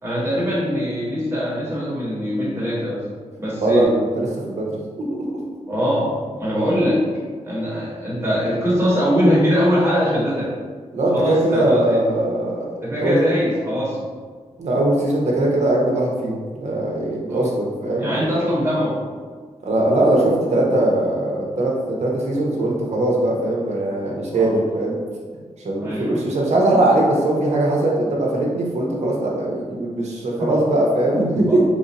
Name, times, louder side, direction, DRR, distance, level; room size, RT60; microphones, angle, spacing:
voice 1, 0.0-3.0 3.4-3.9 5.7-6.1 6.4-7.0 7.4-10.5 11.1-12.0 12.8-14.0 17.3-17.5 18.0-18.9 24.3-24.6 25.8-26.2 30.4-30.5 31.0-31.1 31.3-31.6, equal, 20° right, -8 dB, 1.2 m, -22 dB
voice 2, 3.6-4.7 5.0-5.4 10.9-12.7 13.0-13.2 14.6-18.3 19.6-25.0 25.6-31.6, right 1 dB, 65° right, -2 dB, 0.8 m, -20 dB
3.0 x 2.6 x 4.0 m, 1.5 s
wide cardioid pair, 175°, 12 cm